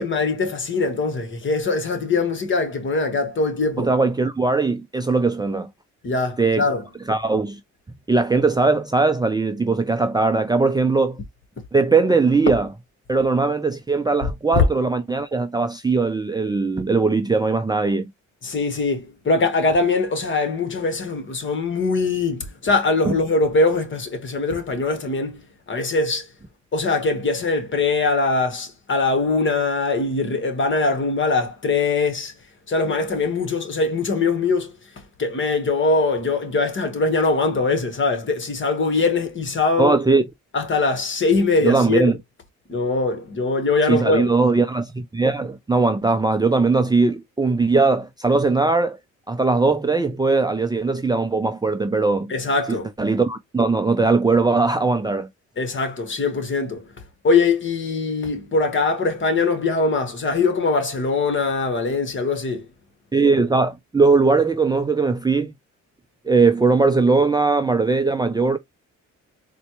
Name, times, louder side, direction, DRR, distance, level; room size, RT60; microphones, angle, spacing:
voice 1, 0.0-3.9 6.0-6.8 14.5-14.6 18.4-25.4 25.7-26.3 26.7-32.3 32.7-34.7 35.2-40.0 40.5-42.2 42.7-44.3 52.3-52.9 55.6-56.8 57.2-62.6, left 3 dB, 40° left, 1.3 m, -22 dB
voice 2, 3.8-5.7 6.4-6.6 7.1-7.6 8.1-11.2 11.7-12.7 13.1-18.1 23.1-23.2 39.8-40.2 41.6-42.1 43.9-49.0 49.3-52.3 52.7-55.3 63.1-65.5 66.2-68.6, right 3 dB, 15° right, 0.5 m, -19 dB
4.1 x 2.2 x 3.0 m
cardioid pair, 90°, 30 cm